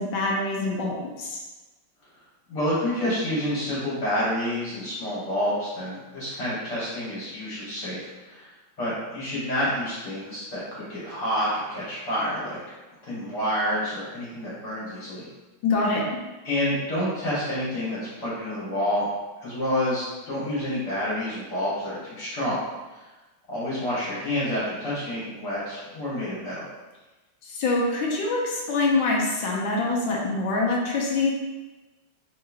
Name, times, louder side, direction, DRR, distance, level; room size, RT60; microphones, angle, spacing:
voice 1, 0.0-1.4 15.6-16.0 27.5-31.4, left 3 dB, 75° left, -2 dB, 1.2 m, -25 dB
voice 2, 2.5-8.5 8.8-12.6 13.0-15.3 16.5-19.1 19.4-22.6 22.9-23.0 23.5-26.6, left 1 dB, 55° left, -10 dB, 1.7 m, -28 dB
3.7 x 2.8 x 2.4 m, 1.1 s
omnidirectional pair, 2.3 m